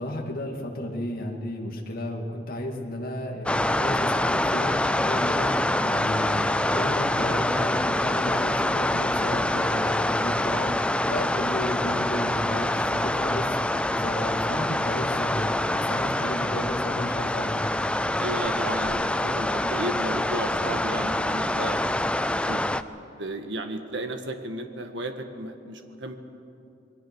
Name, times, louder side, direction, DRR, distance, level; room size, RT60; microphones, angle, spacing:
voice 1, 0.0-17.7, left 1 dB, 50° left, 0 dB, 2.4 m, -33 dB
sound 1, 3.5-22.8, left 1 dB, 5° left, 0.5 m, -25 dB
voice 2, 18.2-21.8 22.4-22.8 23.2-26.2, right 1 dB, 65° right, 6 dB, 1.8 m, -34 dB
28.0 x 21.5 x 6.3 m, 2.7 s
head